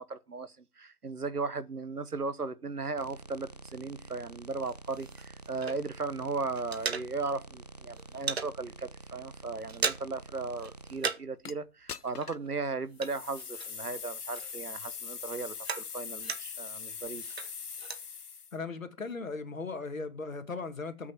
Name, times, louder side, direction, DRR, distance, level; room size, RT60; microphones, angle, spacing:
voice 1, 0.0-17.3, right 3 dB, 85° right, 1.2 m, -36 dB
sound 1, 3.0-11.0, right 2 dB, 30° right, 0.6 m, -48 dB
sound 2, 4.6-6.1 6.4-7.5 7.8-8.5 9.0-9.1 9.4-10.3 10.6-11.4 11.7-14.0 14.3-16.7 17.1-18.0, right 5 dB, 45° right, 1.2 m, -37 dB
sound 3, 11.4-11.5 11.9-12.5 13.0-18.6, left 6 dB, 85° left, 0.8 m, -41 dB
voice 2, 18.5-21.1, left 4 dB, 60° left, 2.2 m, -37 dB
13.5 x 6.3 x 4.6 m
figure-of-eight pair, 150°, 44 cm